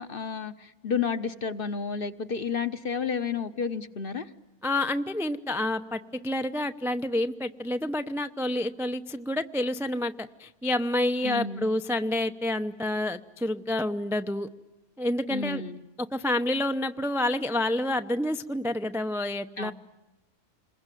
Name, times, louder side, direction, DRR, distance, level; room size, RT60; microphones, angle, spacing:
voice 1, 0.0-4.3 11.2-11.7 15.3-15.8 19.6-19.7, left 6 dB, 40° left, 11 dB, 1.2 m, -31 dB
voice 2, 4.6-14.5 15.0-15.6 16.1-19.7, left 1 dB, ahead, 9 dB, 0.6 m, -28 dB
28.0 x 22.0 x 9.2 m, 1.0 s
omnidirectional pair, 1.5 m